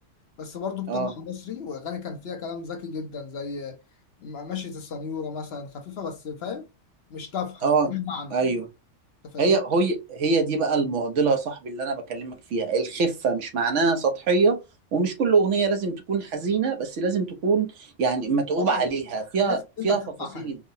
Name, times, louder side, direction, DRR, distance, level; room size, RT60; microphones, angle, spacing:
voice 1, 0.4-3.8 4.2-6.7 7.1-8.4 9.2-9.6 18.6-18.9 19.4-20.5, left 6 dB, 60° left, 1.0 m, -34 dB
voice 2, 8.3-8.6 9.4-14.6 14.9-17.7 18.0-20.0 20.4-20.6, right 4 dB, 75° right, 1.1 m, -24 dB
4.6 x 2.1 x 2.6 m
omnidirectional pair, 1.3 m